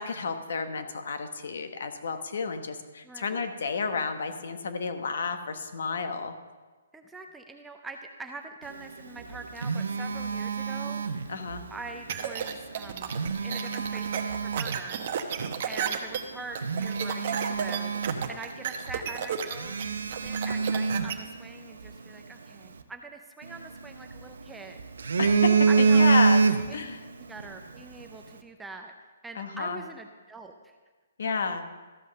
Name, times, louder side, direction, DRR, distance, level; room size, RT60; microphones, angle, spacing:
voice 1, 0.0-6.3 11.3-11.6 25.2-26.4 26.7-27.0 29.4-29.8 31.2-31.7, left 5 dB, 65° left, 7 dB, 1.2 m, -31 dB
voice 2, 3.0-3.5 6.9-11.3 11.7-13.1 13.4-15.4 15.7-19.8 20.2-24.8 25.7-26.1 26.7-26.8 27.2-28.9 29.2-30.8, right 3 dB, 5° right, 3 dB, 0.5 m, -44 dB
Telephone, 9.1-11.6 12.9-14.8 15.4-15.6 16.1-16.2 16.6-18.6 18.9-19.0 19.5-21.9 23.4-24.4 24.8-26.9 27.2-27.5, right 5 dB, 80° right, 0.8 m, -26 dB
sound 1, 12.1-21.1, right 8 dB, 40° right, 0.9 m, -32 dB
13.5 x 5.6 x 6.4 m, 1.3 s
hypercardioid pair, 170°, 0 cm